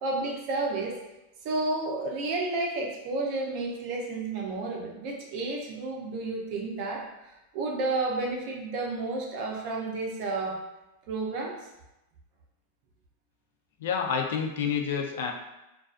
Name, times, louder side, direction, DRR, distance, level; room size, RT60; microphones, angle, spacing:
voice 1, 0.0-1.0 1.4-10.6 11.1-11.6, right 2 dB, 45° right, -1 dB, 0.5 m, -31 dB
voice 2, 13.8-15.3, left 7 dB, 75° left, 2 dB, 0.4 m, -28 dB
2.4 x 2.2 x 2.4 m, 0.94 s
supercardioid pair, 165°, 0 cm